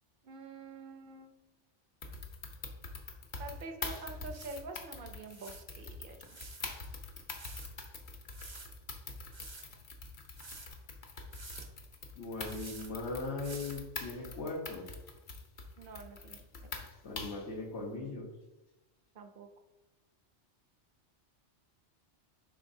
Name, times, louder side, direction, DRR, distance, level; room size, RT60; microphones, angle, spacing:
voice 1, 0.2-1.3 3.4-6.4 15.8-16.7 19.1-19.5, right 3 dB, 55° right, 6 dB, 0.8 m, -47 dB
sound 1, 2.0-17.5, left 4 dB, 50° left, 0.8 m, -44 dB
sound 2, 4.3-4.6 5.3-5.6 6.2-6.6 7.3-7.7 8.3-8.7 9.3-9.7 10.4-10.7 11.3-11.7 12.5-12.9 13.4-13.8 14.5-14.6, right 3 dB, 30° right, 0.6 m, -49 dB
voice 2, 12.2-14.9 17.0-18.3, left 3 dB, 70° left, -3 dB, 1.3 m, -39 dB
9.8 x 3.9 x 2.7 m, 1.0 s
omnidirectional pair, 1.2 m